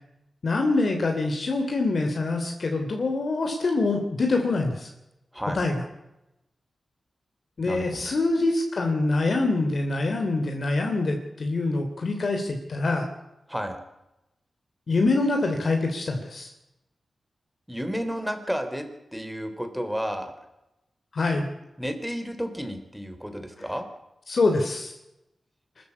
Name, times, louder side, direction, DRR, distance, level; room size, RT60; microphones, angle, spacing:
voice 1, 0.4-4.9 5.5-5.7 7.6-13.1 14.9-16.5 21.1-21.5 24.3-24.9, left 3 dB, 55° left, 4 dB, 3.1 m, -25 dB
voice 2, 7.6-8.1 13.5-13.8 17.7-20.3 21.8-23.9, equal, ahead, 7 dB, 3.8 m, -32 dB
25.5 x 14.0 x 8.6 m, 0.92 s
wide cardioid pair, 100°, 0 cm